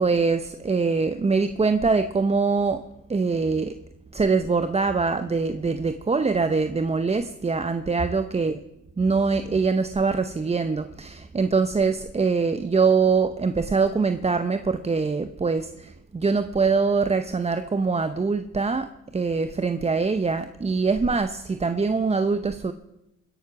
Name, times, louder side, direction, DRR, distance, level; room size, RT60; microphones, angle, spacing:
voice 1, 0.0-3.8 4.1-8.6 9.0-22.7, right 4 dB, 20° right, 0.7 m, -23 dB
22.0 x 10.5 x 6.0 m
cardioid pair, 90°, 30 cm